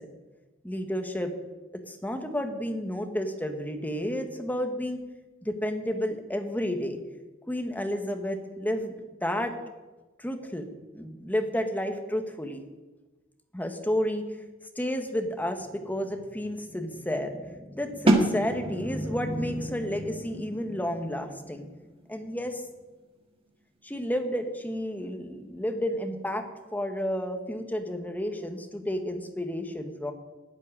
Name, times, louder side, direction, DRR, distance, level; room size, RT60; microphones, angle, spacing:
voice 1, 0.6-1.3 1.7-5.0 5.4-7.0 7.5-9.5 10.2-10.7 10.9-12.6 13.5-14.2 14.7-21.7 22.1-22.6 23.8-26.5 26.7-30.1, equal, 10° left, 5 dB, 1.4 m, -31 dB
sound 1, 18.1-23.8, right 1 dB, 30° right, 1.9 m, -30 dB
12.5 x 7.7 x 9.8 m, 1.2 s
head